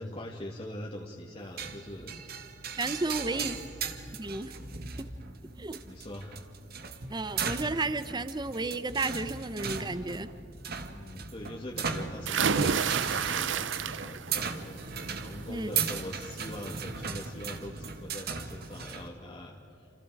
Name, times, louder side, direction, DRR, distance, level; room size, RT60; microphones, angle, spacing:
voice 1, 0.0-2.2 3.0-3.8 4.5-4.9 5.8-6.4 10.9-14.8 15.2-20.0, left 1 dB, 30° left, -2 dB, 2.0 m, -42 dB
sound 1, 1.6-19.1, right 6 dB, 55° right, 1.8 m, -37 dB
voice 2, 2.8-3.6 4.2-4.5 5.6-5.8 7.1-10.3 15.5-15.7, right 3 dB, 25° right, 12 dB, 0.8 m, -32 dB
sound 2, 12.3-14.3 14.7-15.2 16.6-16.7 17.1-17.2, right 6 dB, 80° right, 0.7 m, -29 dB
29.5 x 28.0 x 4.8 m, 2.6 s
head